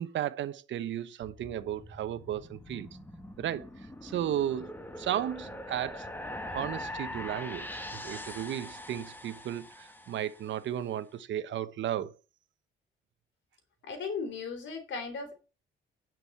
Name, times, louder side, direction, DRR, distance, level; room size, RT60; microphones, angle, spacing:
voice 1, 0.0-2.9 3.4-3.7 4.0-12.1, right 11 dB, 70° right, 0.9 m, -34 dB
sound 1, 1.2-10.6, left 1 dB, 10° left, 1.6 m, -43 dB
voice 2, 13.8-15.3, left 5 dB, 70° left, 3.8 m, -36 dB
10.0 x 6.3 x 5.6 m
cardioid pair, 90°, 20 cm